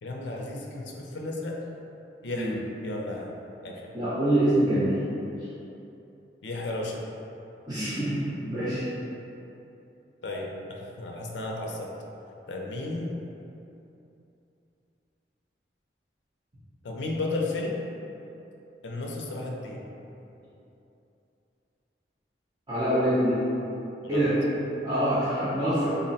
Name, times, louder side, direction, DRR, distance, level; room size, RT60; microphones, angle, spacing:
voice 1, 0.0-1.6 2.2-3.3 3.6-3.8 6.4-7.0 10.2-11.9 12.5-13.1 16.8-17.8 18.8-19.9 24.0-24.3, left 2 dB, 80° left, 0 dB, 0.5 m, -33 dB
voice 2, 3.9-4.9 7.7-8.8 22.7-23.4 24.1-24.3 24.8-25.9, right 1 dB, 20° right, -15 dB, 0.7 m, -25 dB
3.7 x 2.1 x 4.0 m, 2.9 s
head